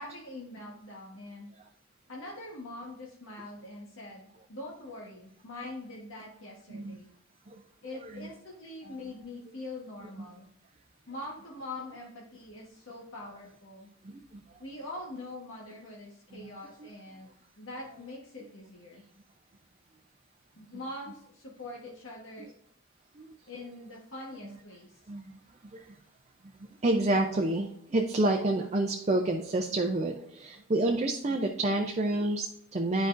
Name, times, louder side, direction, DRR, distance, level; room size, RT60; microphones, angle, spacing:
voice 1, 0.0-1.5 2.1-7.1 7.8-10.5 11.1-13.9 14.6-17.3 17.6-19.0 20.6-22.5 23.5-25.0, left 2 dB, 70° left, -3 dB, 1.3 m, -43 dB
voice 2, 7.8-8.3 8.9-9.0 14.0-14.4 16.3-16.5 23.2-23.3 25.1-25.4 25.6-25.9 26.8-33.1, right 2 dB, 30° right, 3 dB, 0.5 m, -29 dB
10.0 x 5.1 x 2.5 m, 0.71 s
head